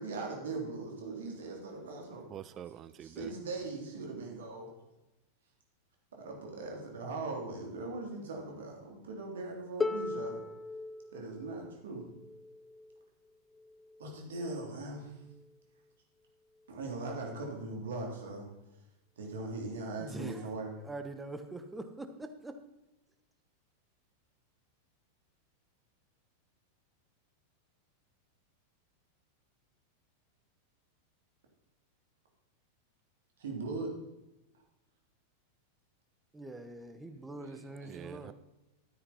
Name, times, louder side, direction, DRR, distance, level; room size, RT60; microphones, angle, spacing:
voice 1, 0.0-2.2 3.0-4.7 6.2-10.4 11.1-12.0 14.0-15.1 16.7-18.5 19.2-20.7 33.4-33.9, right 3 dB, 60° right, 0 dB, 3.3 m, -40 dB
voice 2, 2.3-3.3 37.9-38.3, right 10 dB, 30° right, 16 dB, 0.5 m, -46 dB
Harp, 9.8-15.6 16.6-16.7, left 3 dB, 15° left, 0.6 m, -40 dB
voice 3, 20.0-20.5 20.8-22.5 36.3-38.3, right 2 dB, 10° right, 8 dB, 1.1 m, -44 dB
13.0 x 9.7 x 4.3 m, 0.99 s
figure-of-eight pair, 90°, 0 cm